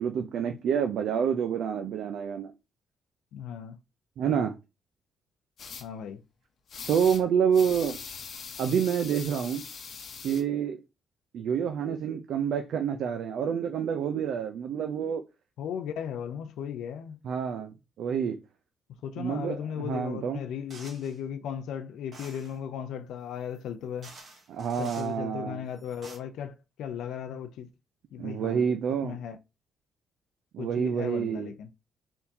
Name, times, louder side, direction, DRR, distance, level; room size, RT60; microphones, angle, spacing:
voice 1, 0.0-2.5 4.2-4.5 6.9-8.0 8.6-9.6 10.2-10.8 11.3-15.2 17.2-18.4 19.2-19.6 19.9-20.4 24.5-25.6 28.2-29.2 30.5-31.5, right 7 dB, 65° right, 0.4 m, -28 dB
voice 2, 3.3-3.8 4.3-4.4 5.8-6.2 15.6-17.2 19.0-24.1 24.8-27.7 28.1-28.7 29.0-29.4 30.6-31.7, left 8 dB, 80° left, 0.4 m, -36 dB
sound 1, 5.6-5.8 6.7-7.2 7.5-10.4, left 5 dB, 45° left, 0.9 m, -41 dB
sound 2, 20.7-21.2 22.1-22.6 23.6-23.7 24.0-25.1 25.8-26.2, right 2 dB, 40° right, 1.4 m, -49 dB
4.4 x 3.6 x 2.7 m
cardioid pair, 170°, 0 cm